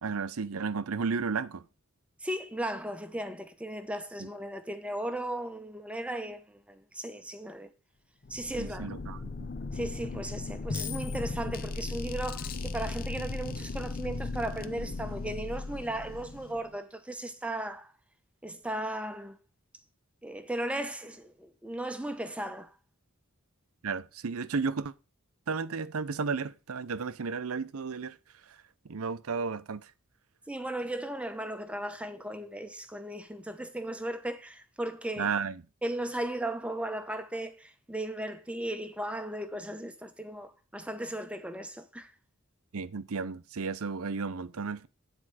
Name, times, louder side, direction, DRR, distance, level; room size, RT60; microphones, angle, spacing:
voice 1, 0.0-1.6 8.6-9.5 23.8-24.9 25.5-28.2 28.8-29.9 35.2-35.6 42.7-44.9, right 5 dB, 80° right, 0.6 m, -33 dB
voice 2, 2.2-7.7 8.3-8.9 9.7-17.9 18.4-19.4 20.2-22.7 30.5-35.3 35.8-42.1, right 1 dB, 5° right, 0.8 m, -36 dB
sound 1, 8.2-16.7, left 3 dB, 40° left, 0.5 m, -37 dB
9.9 x 4.5 x 6.1 m
head